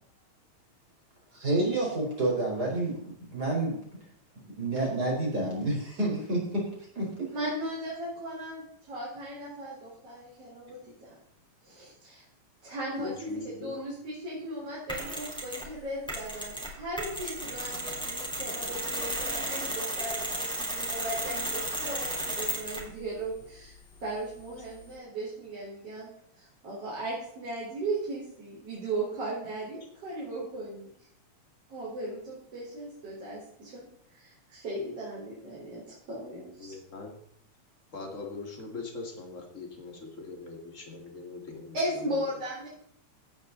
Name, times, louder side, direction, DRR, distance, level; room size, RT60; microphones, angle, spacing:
voice 1, 1.3-3.7 4.5-6.6 6.9-7.3, right 2 dB, 30° right, -2 dB, 4.9 m, -29 dB
voice 2, 7.3-11.2 11.6-12.2 12.6-31.1 31.7-36.8 41.7-42.7, right 1 dB, 45° right, -7 dB, 5.6 m, -37 dB
voice 3, 13.0-13.7 36.6-37.1 37.9-41.7, left 3 dB, 25° left, 2 dB, 2.4 m, -40 dB
Mechanisms, 14.9-15.7 16.1-22.9, right 1 dB, ahead, 3.6 m, -34 dB
17.0 x 9.7 x 4.1 m, 0.69 s
omnidirectional pair, 3.7 m